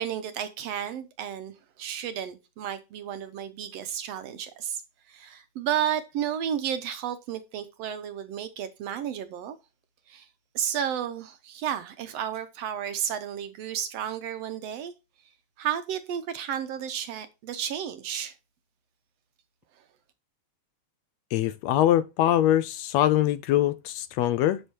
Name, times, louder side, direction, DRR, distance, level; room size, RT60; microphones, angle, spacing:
voice 1, 0.0-4.8 5.1-9.6 10.1-10.3 10.5-14.9 15.6-18.3, right 9 dB, 70° right, 1.7 m, -32 dB
voice 2, 21.3-24.6, left 12 dB, 80° left, 1.6 m, -23 dB
11.5 x 6.4 x 2.9 m
omnidirectional pair, 3.3 m